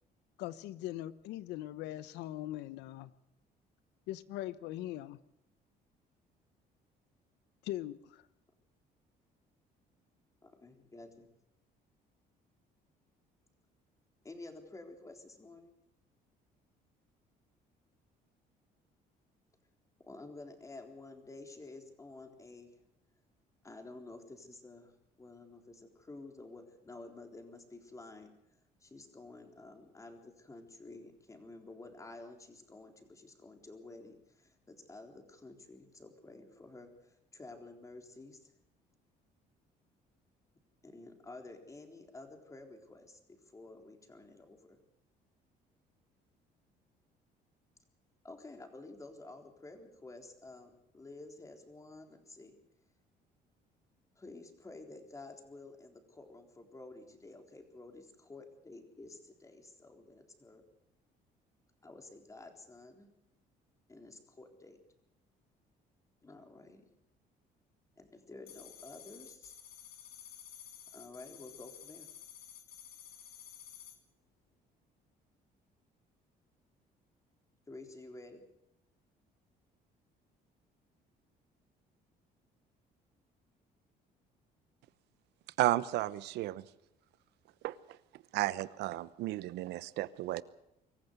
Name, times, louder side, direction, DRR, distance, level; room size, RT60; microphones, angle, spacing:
voice 1, 0.4-3.1 4.1-5.2 7.6-8.2, left 14 dB, 90° left, 16 dB, 1.0 m, -41 dB
voice 2, 10.4-11.3 14.2-15.7 20.0-22.8 23.6-24.9 25.2-28.3 28.8-38.5 40.8-44.8 48.2-52.5 54.2-60.6 61.8-63.1 63.9-64.8 66.2-66.8 68.0-69.5 70.9-72.1 77.7-78.5, left 2 dB, 20° left, 5 dB, 3.8 m, -51 dB
sound 1, 68.5-74.0, left 9 dB, 65° left, 3.4 m, -52 dB
voice 3, 85.6-86.6 87.6-87.8 88.3-90.4, right 16 dB, 85° right, 17 dB, 1.0 m, -33 dB
24.5 x 14.5 x 8.1 m, 0.82 s
cardioid pair, 110°, 17 cm